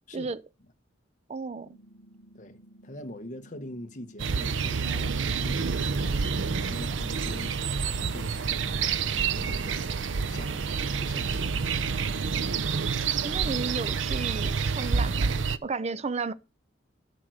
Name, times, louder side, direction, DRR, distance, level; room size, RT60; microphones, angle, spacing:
voice 1, 1.3-1.7 13.2-16.3, right 4 dB, 35° right, 0.5 m, -33 dB
sound 1, 1.6-11.6, right 1 dB, 75° left, 1.7 m, -54 dB
voice 2, 2.3-7.6 8.0-10.6 11.0-11.6, left 1 dB, 40° left, 1.3 m, -44 dB
sound 2, 4.2-15.6, right 5 dB, 75° right, 0.6 m, -28 dB
12.5 x 4.6 x 6.4 m
head